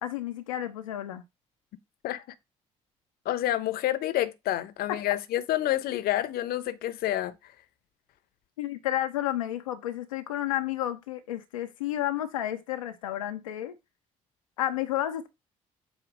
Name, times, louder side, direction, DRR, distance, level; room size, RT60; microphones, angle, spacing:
voice 1, 0.0-1.2 8.6-13.7 14.6-15.3, left 13 dB, 90° left, 0.7 m, -31 dB
voice 2, 3.2-7.5, left 13 dB, 65° left, 0.9 m, -28 dB
8.2 x 2.9 x 6.1 m
hypercardioid pair, 50°, 17 cm